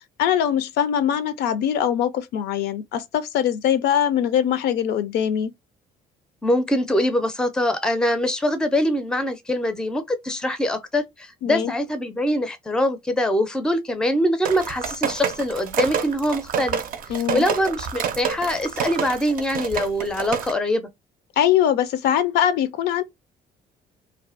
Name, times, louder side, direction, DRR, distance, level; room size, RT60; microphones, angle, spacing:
voice 1, 0.2-5.5 11.4-11.7 17.1-17.4 21.4-23.0, left 9 dB, 75° left, 0.4 m, -22 dB
voice 2, 6.4-16.8 17.3-20.9, left 1 dB, 5° left, 0.4 m, -23 dB
sound 1, 14.4-20.5, right 8 dB, 55° right, 0.4 m, -28 dB
2.4 x 2.2 x 2.4 m
cardioid pair, 110°, 17 cm